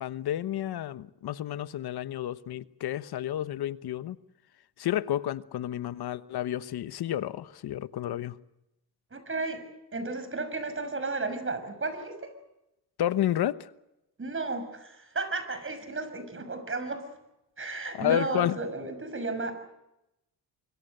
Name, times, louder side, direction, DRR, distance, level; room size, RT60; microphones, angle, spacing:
voice 1, 0.0-4.2 4.8-8.4 13.0-13.7 18.0-18.6, left 12 dB, 70° left, 1.1 m, -30 dB
voice 2, 9.1-9.6 9.9-12.3 14.2-17.0 17.6-19.5, right 3 dB, 30° right, 6.3 m, -33 dB
25.5 x 24.0 x 6.7 m
cardioid pair, 80°, 40 cm